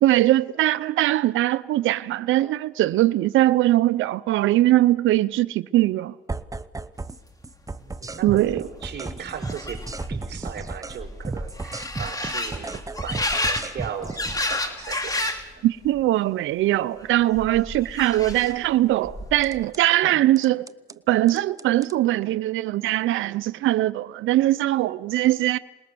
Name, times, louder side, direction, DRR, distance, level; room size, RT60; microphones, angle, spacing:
voice 1, 0.0-6.1 8.2-8.6 15.6-20.7 21.1-25.6, right 15 dB, 85° right, 0.7 m, -21 dB
sound 1, 6.3-7.2 7.4-11.0 11.2-14.6 19.4-19.8 20.4-20.9 21.3-21.9, right 3 dB, 15° right, 0.9 m, -34 dB
voice 2, 7.8-9.8 10.1-15.4 19.9-20.3, right 7 dB, 60° right, 4.7 m, -37 dB
sound 2, 8.0-8.1 8.2-15.5 15.8-16.4 17.4-18.7 19.0-19.6, left 2 dB, 20° left, 3.0 m, -31 dB
26.5 x 20.5 x 6.9 m
cardioid pair, 90°, 20 cm